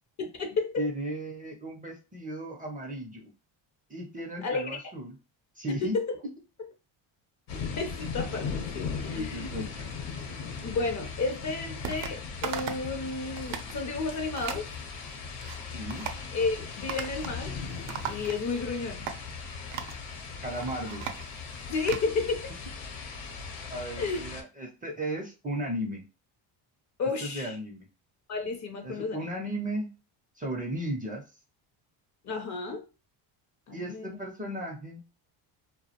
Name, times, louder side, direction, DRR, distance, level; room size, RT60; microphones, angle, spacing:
voice 1, 0.2-0.9 4.4-4.8 5.8-6.1 7.5-9.5 10.6-14.7 16.3-17.6 18.1-19.1 21.7-22.5 24.0-24.2 27.0-27.5 28.3-29.3 32.2-32.8 33.7-34.1, left 3 dB, 40° left, 5 dB, 0.5 m, -32 dB
voice 2, 0.8-3.3 3.9-5.2 5.6-6.0 9.1-9.9 15.7-16.1 20.4-21.0 23.7-26.0 27.2-27.9 28.8-29.9 30.3-31.2 33.7-35.0, right 1 dB, 20° right, 0 dB, 0.4 m, -35 dB
sound 1, 7.5-24.4, left 5 dB, 75° left, 0.8 m, -38 dB
sound 2, 11.8-12.1 12.4-12.9 13.3-13.7 14.4-14.7 15.2-15.6 15.9-16.2 16.9-17.4 17.7-18.6 19.1-19.2 19.7-20.0 20.5-22.1, right 8 dB, 75° right, 0.6 m, -37 dB
2.2 x 2.0 x 2.8 m, 0.31 s
cardioid pair, 100°, 49 cm